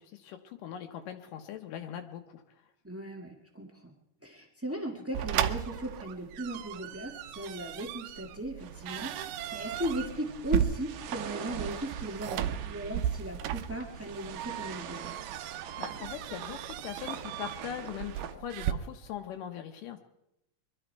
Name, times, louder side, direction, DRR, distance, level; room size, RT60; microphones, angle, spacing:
voice 1, 0.0-2.4 15.8-20.0, left 10 dB, 80° left, 4 dB, 2.5 m, -41 dB
voice 2, 2.8-3.9 4.2-15.1, right 1 dB, 20° right, 1 dB, 0.4 m, -37 dB
sound 1, 5.1-18.7, right 11 dB, 85° right, 2.4 m, -35 dB
sound 2, 8.6-18.4, right 9 dB, 70° right, 2.0 m, -44 dB
23.0 x 12.5 x 4.5 m, 0.84 s
omnidirectional pair, 3.8 m